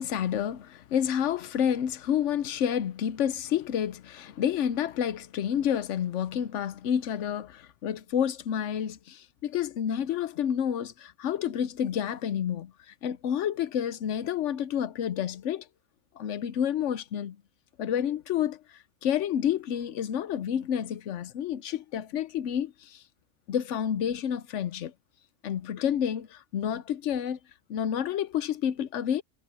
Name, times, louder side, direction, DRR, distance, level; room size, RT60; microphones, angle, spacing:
voice 1, 0.0-12.7 13.0-15.7 16.2-17.4 17.8-18.6 19.0-23.0 23.5-24.9 25.4-27.4 27.7-29.2, left 9 dB, 75° left, 1.1 m, -29 dB
omnidirectional pair, 1.2 m